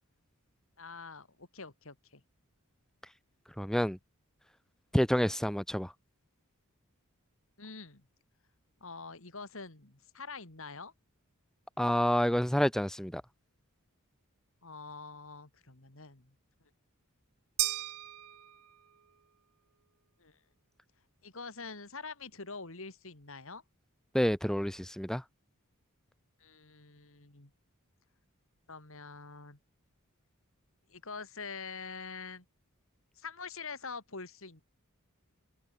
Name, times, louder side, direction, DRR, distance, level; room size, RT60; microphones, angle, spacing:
voice 1, 0.8-2.2 7.6-8.0 8.8-10.9 14.6-16.3 20.2-20.4 21.2-23.6 26.4-27.5 28.7-29.6 30.9-32.4 33.2-34.6, left 4 dB, 65° left, 3.2 m, -45 dB
voice 2, 3.6-4.0 4.9-5.9 11.8-13.2 24.1-25.2, equal, ahead, 0.8 m, -28 dB
sound 1, 17.6-19.0, right 16 dB, 85° right, 0.8 m, -35 dB
head